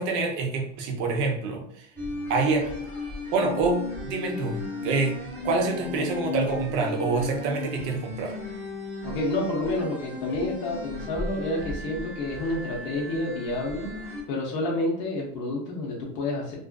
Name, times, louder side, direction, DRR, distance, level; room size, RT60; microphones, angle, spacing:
voice 1, 0.0-1.9 2.3-2.7 3.3-5.2 5.4-8.4, right 3 dB, 35° right, 2 dB, 0.5 m, -26 dB
sound 1, 2.0-14.2, left 2 dB, 5° left, 0.9 m, -35 dB
voice 2, 9.0-13.9 14.3-16.6, left 2 dB, 35° left, -4 dB, 0.6 m, -29 dB
2.4 x 2.4 x 2.2 m, 0.67 s
supercardioid pair, 155°, 36 cm